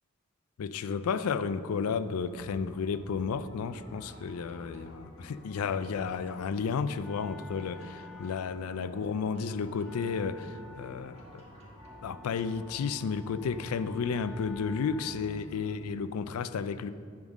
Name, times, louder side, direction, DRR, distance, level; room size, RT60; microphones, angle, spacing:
voice 1, 0.6-11.4 12.0-16.9, left 5 dB, 85° left, 0.4 m, -32 dB
sound 1, 2.3-15.8, left 1 dB, 15° left, 1.0 m, -52 dB
sound 2, 3.7-12.6, equal, 30° right, 1.4 m, -57 dB
Wind instrument woodwind instrument, 6.4-15.5, left 2 dB, ahead, 0.4 m, -52 dB
10.5 x 3.7 x 6.2 m
head